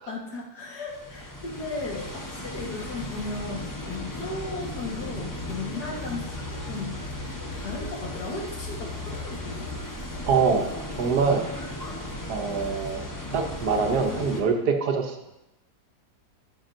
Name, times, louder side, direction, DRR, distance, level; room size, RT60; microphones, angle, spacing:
voice 1, 0.1-7.0 7.5-9.7, left 3 dB, 75° left, -1 dB, 2.0 m, -36 dB
sound 1, 0.9-14.4, left 1 dB, 25° left, 0.5 m, -36 dB
voice 2, 10.2-10.7 11.0-11.5 12.3-13.0 13.3-15.1, right 5 dB, 75° right, 4 dB, 1.4 m, -24 dB
11.5 x 6.2 x 2.6 m, 0.93 s
omnidirectional pair, 1.8 m